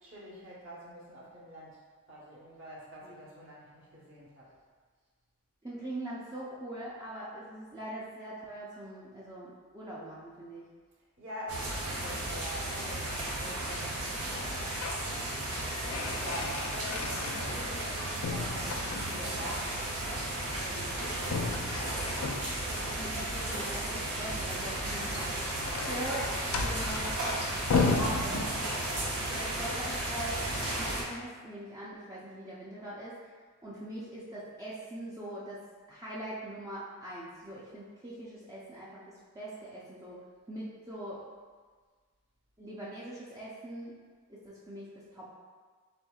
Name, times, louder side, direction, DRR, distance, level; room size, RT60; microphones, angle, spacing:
voice 1, 0.0-1.8 2.1-4.5 11.2-14.8 16.2-19.7 20.7-22.3, equal, 60° right, -6 dB, 1.0 m, -45 dB
voice 2, 5.6-10.7 20.2-20.9 23.0-25.3 25.9-27.2 27.9-28.5 29.3-33.2 33.6-35.6 35.9-39.0 39.3-40.2 40.5-41.2 42.6-43.9 44.3-45.3, right 1 dB, 15° right, -8 dB, 0.4 m, -42 dB
sound 1, 11.5-31.0, right 1 dB, 90° right, 0.8 m, -34 dB
sound 2, 14.5-15.1 15.5-17.9 18.2-19.4 21.2-22.8 24.9-29.0, left 4 dB, 90° left, 0.4 m, -34 dB
4.3 x 3.7 x 2.3 m, 1.5 s
head